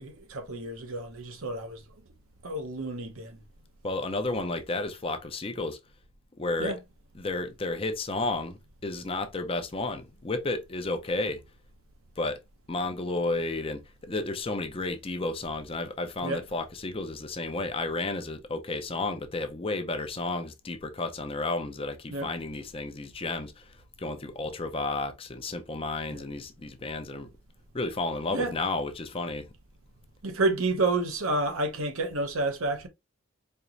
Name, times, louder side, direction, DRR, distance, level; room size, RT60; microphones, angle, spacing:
voice 1, 0.0-1.8 2.4-3.4 6.6-6.8 16.2-16.4 22.1-22.3 26.1-26.2 28.3-28.5 30.2-32.9, right 2 dB, 85° right, 0.9 m, -30 dB
voice 2, 3.8-5.8 6.4-6.8 7.1-11.4 12.2-12.4 12.7-27.3 27.7-29.5, left 2 dB, 25° left, 0.5 m, -32 dB
4.4 x 2.9 x 2.5 m
head